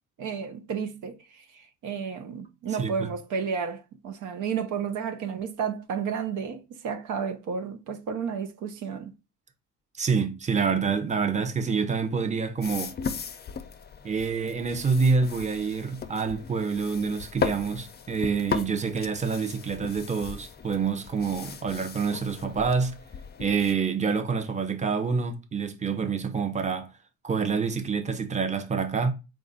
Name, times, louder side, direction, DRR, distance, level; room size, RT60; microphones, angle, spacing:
voice 1, 0.2-9.1, right 6 dB, 80° right, 0.8 m, -32 dB
voice 2, 2.7-3.1 10.0-12.9 14.0-22.9 23.4-26.9 27.2-29.1, right 5 dB, 25° right, 0.7 m, -27 dB
sound 1, 12.6-23.7, left 6 dB, 35° left, 0.5 m, -37 dB
4.1 x 2.4 x 3.9 m
cardioid pair, 90°, 30 cm